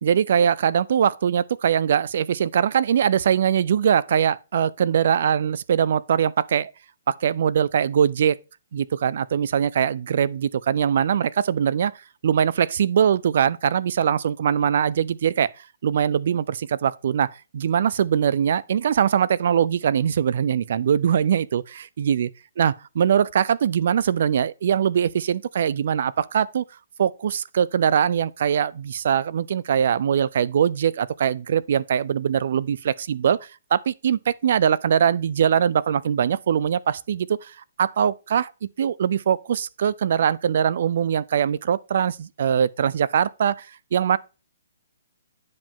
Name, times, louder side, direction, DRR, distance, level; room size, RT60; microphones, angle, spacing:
voice 1, 0.0-6.7 7.1-8.4 8.7-11.9 12.2-22.3 22.6-26.6 27.0-38.5 38.8-44.2, right 8 dB, 55° right, 0.4 m, -22 dB
9.4 x 5.0 x 3.6 m
hypercardioid pair, 155°, 0 cm